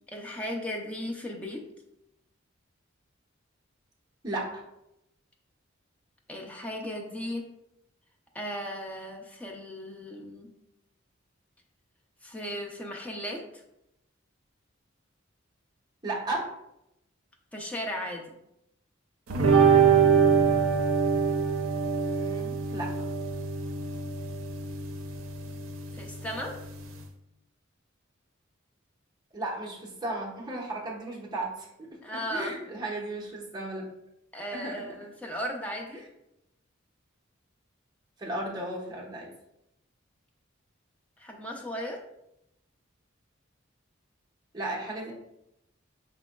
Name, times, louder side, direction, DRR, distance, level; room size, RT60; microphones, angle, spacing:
voice 1, 0.1-1.6 6.3-7.4 8.3-10.5 12.2-13.6 17.5-18.2 25.9-26.5 32.0-32.5 34.3-36.0 41.2-42.0, equal, 5° left, -1 dB, 0.5 m, -36 dB
voice 2, 4.2-4.6 16.0-16.5 22.0-22.9 29.3-32.0 32.3-33.8 34.5-34.8 35.9-36.0 38.2-39.3 44.5-45.1, right 2 dB, 20° right, -4 dB, 0.9 m, -35 dB
sound 1, 19.3-27.0, right 6 dB, 85° right, 0.5 m, -24 dB
5.2 x 3.3 x 2.2 m, 0.84 s
head